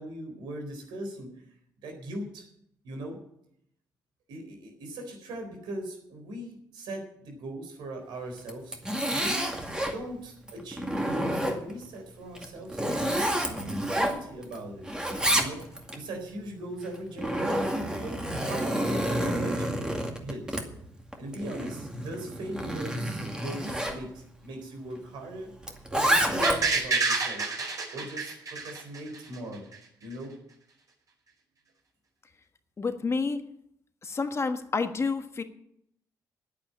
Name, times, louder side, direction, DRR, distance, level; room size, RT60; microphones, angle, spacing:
voice 1, 0.0-1.3 1.8-2.5 2.8-3.2 4.3-8.8 9.1-9.5 9.8-14.9 15.3-15.6 15.9-19.8 20.2-20.6 21.2-25.5 25.9-27.5 27.9-29.7 30.0-30.3, right 1 dB, 85° right, 3 dB, 4.1 m, -39 dB
Zipper (clothing), 8.4-10.0 10.5-11.8 12.3-14.6 14.8-16.0 16.8-24.0 25.6-26.8, right 1 dB, 10° right, 2.2 m, -29 dB
sound 1, 26.4-29.4 29.7-29.8, right 4 dB, 50° right, 4.9 m, -28 dB
voice 2, 32.8-33.4 34.0-35.4, left 4 dB, 35° left, 7 dB, 1.4 m, -29 dB
9.7 x 8.8 x 9.8 m, 0.74 s
cardioid pair, 75°, 8 cm